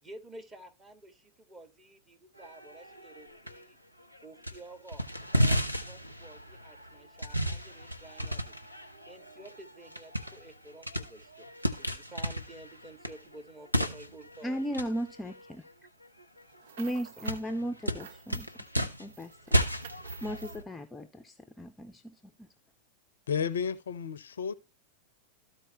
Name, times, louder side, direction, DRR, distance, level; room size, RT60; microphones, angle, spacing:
voice 1, 0.0-3.8 4.2-5.1 5.3-8.5 9.1-11.5 11.7-14.6, right 2 dB, 20° right, 1.9 m, -51 dB
sound 1, 2.4-3.6 4.0-4.6 4.9-16.4 16.8-16.9 17.2-20.6, equal, 90° right, 0.9 m, -34 dB
voice 2, 14.4-15.6 16.8-19.3 20.2-22.1 22.4-22.5, equal, 10° left, 0.7 m, -36 dB
sound 2, 16.4-17.5 17.8-18.7 19.1-20.6, right 8 dB, 60° right, 0.7 m, -51 dB
voice 3, 23.3-24.5, left 6 dB, 65° left, 0.6 m, -32 dB
14.0 x 4.6 x 3.0 m
figure-of-eight pair, 90°, 0 cm